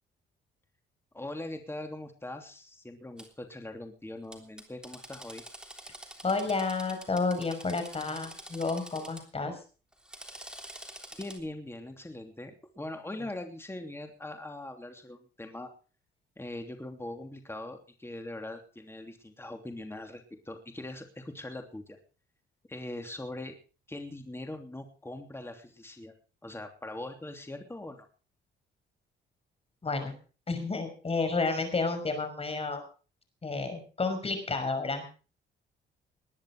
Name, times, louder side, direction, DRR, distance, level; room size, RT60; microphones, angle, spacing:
voice 1, 1.1-5.4 11.2-15.7 16.4-22.0 22.7-23.5 23.9-26.1 26.4-28.1, left 1 dB, 10° left, 5 dB, 3.0 m, -41 dB
Drill, 3.2-3.3 4.3-9.2 9.9-11.4, right 1 dB, 5° right, 3.4 m, -47 dB
voice 2, 6.2-9.6 29.8-30.1 30.5-32.8 33.4-35.1, left 3 dB, 30° left, 8 dB, 5.7 m, -31 dB
20.5 x 10.5 x 4.9 m, 0.36 s
cardioid pair, 90°, 20 cm